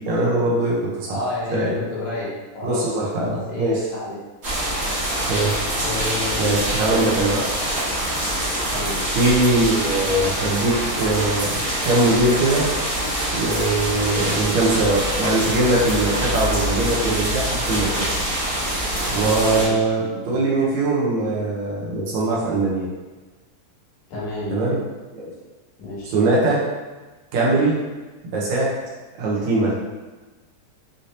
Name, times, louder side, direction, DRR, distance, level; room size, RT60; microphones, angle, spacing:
voice 1, 0.0-1.2 1.5-1.7 2.6-3.8 5.3-5.6 6.4-7.5 9.2-12.7 13.3-18.1 19.1-22.9 24.5-24.8 25.1-25.3 26.1-26.6 27.3-27.8 28.3-28.8 29.2-29.8, right 2 dB, 75° right, -4 dB, 1.9 m, -21 dB
voice 2, 1.1-2.8 3.2-4.2 5.8-6.7 8.7-9.0 13.9-14.2 19.1-19.8 24.1-24.8 25.8-26.1, left 2 dB, 85° left, -7 dB, 2.9 m, -30 dB
sound 1, 4.4-19.7, right 1 dB, 45° right, 1.1 m, -25 dB
6.4 x 2.7 x 2.7 m, 1.2 s
omnidirectional pair, 3.6 m